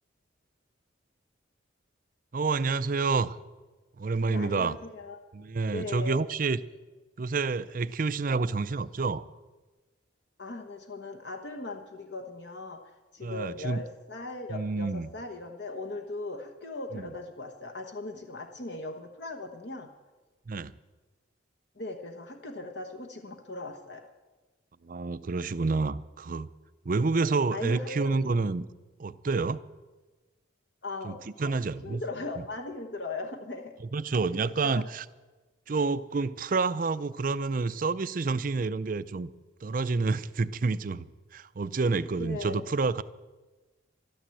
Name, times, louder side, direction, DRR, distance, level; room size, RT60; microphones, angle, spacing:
voice 1, 2.3-3.4 4.0-4.7 5.3-6.6 7.2-9.2 13.2-13.8 14.5-15.1 16.9-17.1 20.5-20.7 24.8-26.5 26.9-28.7 29.0-29.6 31.0-32.0 33.9-35.1 35.7-39.3 39.6-41.1 41.3-43.0, right 4 dB, 45° right, 15 dB, 0.5 m, -28 dB
voice 2, 4.3-5.2 5.7-6.2 10.4-12.8 13.1-19.9 21.7-24.1 27.5-28.3 30.8-33.7 34.6-34.8 42.2-42.6, left 2 dB, 60° left, 5 dB, 1.1 m, -39 dB
13.0 x 12.5 x 7.7 m, 1.2 s
head